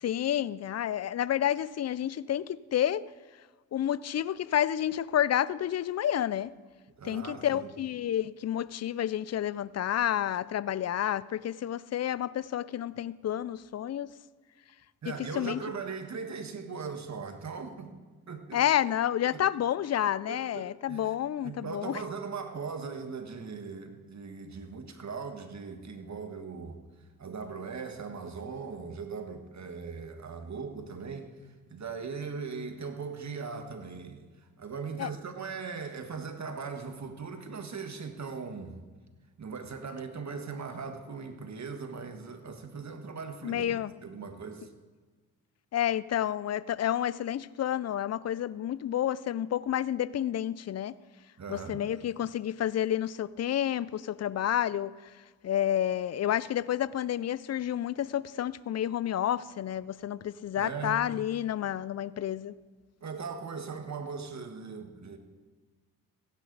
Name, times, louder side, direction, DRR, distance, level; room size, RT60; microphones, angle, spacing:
voice 1, 0.0-3.0 3.7-6.5 7.0-14.1 15.1-15.6 18.5-22.0 35.0-35.1 43.4-43.9 45.7-50.9 51.5-54.9 55.4-62.5, left 11 dB, 40° left, 19 dB, 0.5 m, -30 dB
voice 2, 7.0-7.7 15.0-18.0 18.3-18.6 19.3-19.4 20.0-21.1 21.4-26.8 27.2-31.3 31.7-34.2 34.6-38.8 39.4-43.7 44.0-44.7 51.4-51.8 60.6-61.0 63.0-65.2, right 5 dB, 40° right, 7 dB, 1.5 m, -39 dB
16.0 x 9.8 x 4.0 m, 1.4 s
supercardioid pair, 60°, 43 cm